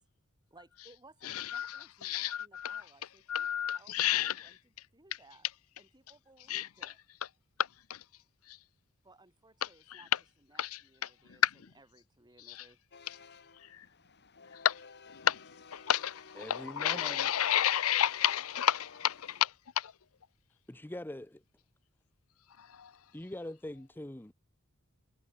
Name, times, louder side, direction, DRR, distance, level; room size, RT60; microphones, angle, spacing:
voice 1, 0.5-3.5 3.7-5.5 5.8-7.0 9.0-10.1 10.4-11.4 11.7-12.8, right 2 dB, 20° right, 4.8 m, -61 dB
voice 2, 1.2-2.8 3.3-4.5 6.5-6.9 7.9-8.0 8.5-8.6 9.6-9.7 10.6-10.7 11.4-11.5 12.5-12.6 13.1-13.2 13.7-13.9 14.6-14.8 15.1-15.4 15.7-19.9 22.6-22.9, left 10 dB, 85° left, 0.7 m, -31 dB
sound 1, 12.9-19.4, left 5 dB, 55° left, 2.2 m, -55 dB
voice 3, 16.4-17.3 20.7-21.4 23.1-24.3, left 1 dB, 10° left, 0.8 m, -43 dB
head